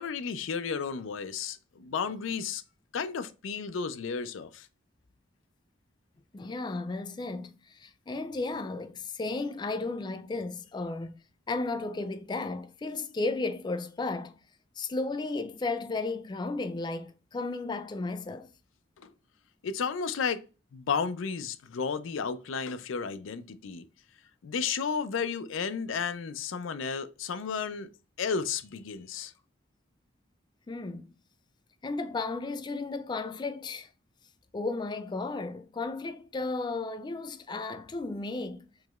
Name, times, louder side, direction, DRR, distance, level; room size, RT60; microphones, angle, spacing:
voice 1, 0.0-2.6 2.9-4.7 19.0-19.1 19.6-20.4 20.7-23.8 24.4-27.9 28.2-29.3, left 6 dB, 90° left, 0.4 m, -33 dB
voice 2, 6.3-11.1 11.5-14.4 14.8-18.5 30.7-31.1 31.8-33.9 34.5-38.7, left 3 dB, 25° left, 0.3 m, -34 dB
4.6 x 3.0 x 2.3 m
head